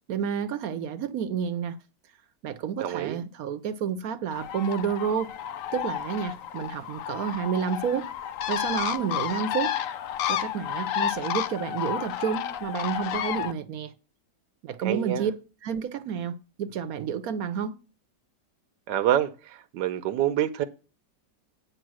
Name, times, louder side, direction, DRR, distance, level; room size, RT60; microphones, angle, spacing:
voice 1, 0.1-1.8 2.4-5.3 5.7-8.1 8.5-9.8 10.3-13.9 14.6-15.3 15.6-17.7, right 7 dB, 65° right, 1.0 m, -30 dB
voice 2, 2.8-3.2 14.8-15.3 18.9-20.6, right 11 dB, 85° right, 1.3 m, -26 dB
Bird, 4.3-13.5, left 10 dB, 70° left, 0.8 m, -31 dB
9.1 x 5.3 x 6.2 m
omnidirectional pair, 1.9 m